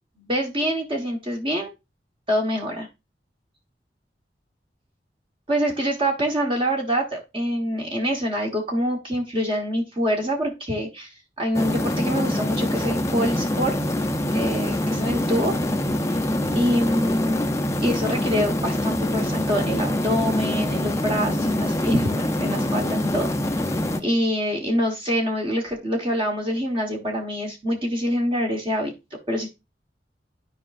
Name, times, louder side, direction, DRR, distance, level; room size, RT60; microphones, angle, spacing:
voice 1, 0.2-1.7 2.3-2.9 5.5-11.1 11.4-13.8 14.3-15.5 16.1-16.2 16.5-17.5 17.8-23.7 24.0-28.9 29.3-29.5, equal, 30° right, 0 dB, 1.2 m, -25 dB
sound 1, 11.5-24.0, left 1 dB, 15° left, 0.6 m, -25 dB
12.0 x 5.0 x 2.5 m, 0.25 s
head